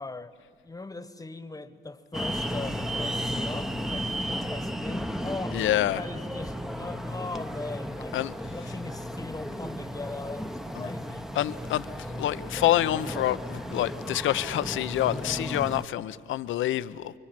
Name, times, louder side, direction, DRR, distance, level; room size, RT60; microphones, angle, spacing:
voice 1, 0.0-8.2 8.5-11.3 13.5-13.7, left 3 dB, 15° left, 1.4 m, -40 dB
sound 1, 2.1-15.8, equal, ahead, 1.0 m, -34 dB
voice 2, 5.5-6.0 8.1-8.3 10.7-10.9 11.3-17.1, left 13 dB, 80° left, 0.8 m, -27 dB
29.5 x 23.5 x 7.7 m
cardioid pair, 90°, 20 cm